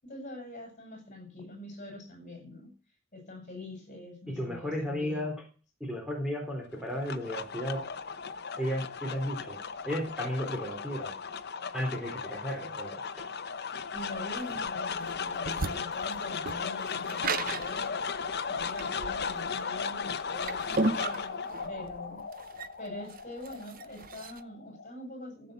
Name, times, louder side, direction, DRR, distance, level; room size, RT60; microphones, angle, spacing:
voice 1, 0.0-2.7 3.1-5.3 13.9-22.2 22.8-25.5, left 1 dB, 40° left, 3 dB, 7.3 m, -44 dB
voice 2, 4.3-5.4 5.8-7.9 8.6-9.6 9.8-11.2 11.7-13.2, equal, 5° right, 0 dB, 3.6 m, -34 dB
sound 1, 6.7-25.1, left 5 dB, 55° left, 1.0 m, -36 dB
Rumbling Boards Tools etc., 14.0-24.4, right 3 dB, 45° right, 0.9 m, -36 dB
15.0 x 8.2 x 7.9 m, 0.38 s
head